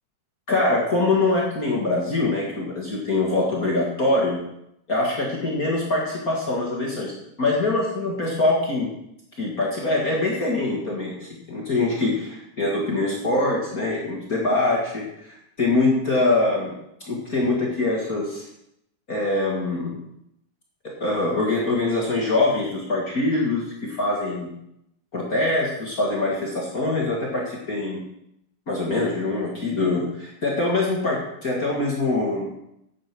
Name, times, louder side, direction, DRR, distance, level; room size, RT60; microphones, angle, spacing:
voice 1, 0.5-4.4 4.9-7.1 7.4-8.9 9.4-16.7 17.0-18.5 19.1-20.0 20.8-24.5 25.1-28.0 28.7-32.5, left 2 dB, 35° left, -3 dB, 1.8 m, -24 dB
9.0 x 8.7 x 6.0 m, 0.79 s
omnidirectional pair, 3.7 m